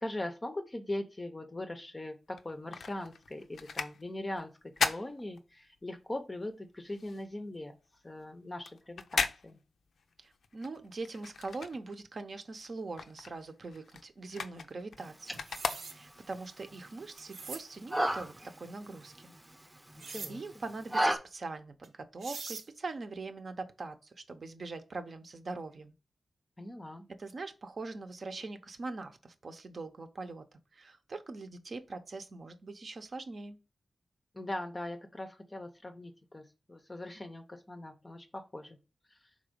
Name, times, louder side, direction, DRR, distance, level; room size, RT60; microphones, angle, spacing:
voice 1, 0.0-7.7 8.0-9.6 20.1-20.4 26.6-27.0 34.3-38.8 39.1-39.3, left 1 dB, 20° left, 0.6 m, -40 dB
sound 1, 2.3-6.0 6.3-12.3 12.6-16.4 16.9-17.0, left 5 dB, 85° left, 0.5 m, -38 dB
voice 2, 10.2-15.4 15.9-19.3 20.3-25.9 27.2-33.6, right 3 dB, 50° right, 0.7 m, -42 dB
sound 2, 15.0-21.2, right 1 dB, 15° right, 0.8 m, -36 dB
sound 3, 15.3-16.0 17.2-17.6 20.0-20.3 21.8-21.9 22.2-22.7, right 4 dB, 85° right, 0.8 m, -43 dB
5.2 x 3.9 x 5.1 m
wide cardioid pair, 165°, 0 cm